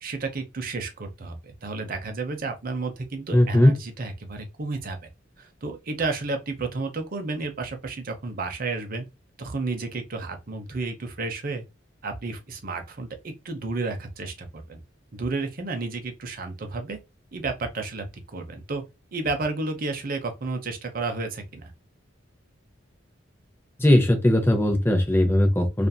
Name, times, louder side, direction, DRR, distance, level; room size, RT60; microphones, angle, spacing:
voice 1, 0.0-5.0 5.4-9.1 9.4-11.6 12.0-14.8 15.1-17.0 17.3-18.8 19.1-21.7, right 3 dB, 50° right, 0.6 m, -32 dB
voice 2, 3.3-3.8 23.8-25.9, left 1 dB, 10° left, 0.6 m, -19 dB
2.7 x 2.5 x 2.2 m
head